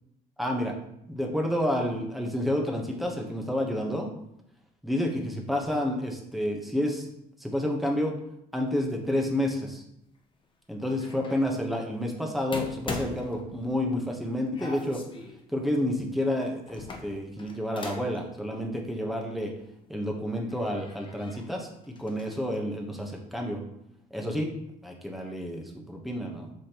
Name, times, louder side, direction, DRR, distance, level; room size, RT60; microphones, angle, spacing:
voice 1, 0.4-0.7 1.1-4.1 4.8-7.1 7.4-8.1 8.5-9.8 10.7-15.0 15.5-19.5 19.9-23.6 24.1-24.5 24.8-26.5, left 1 dB, ahead, 1 dB, 1.0 m, -29 dB
sound 1, 11.0-11.5 12.5-14.0 14.5-15.4 16.7-18.2 18.5-18.6 19.8-19.9 20.5-21.5 21.8-22.4, left 4 dB, 30° left, 0.8 m, -40 dB
6.1 x 5.2 x 3.0 m, 0.77 s
cardioid pair, 110°, 17 cm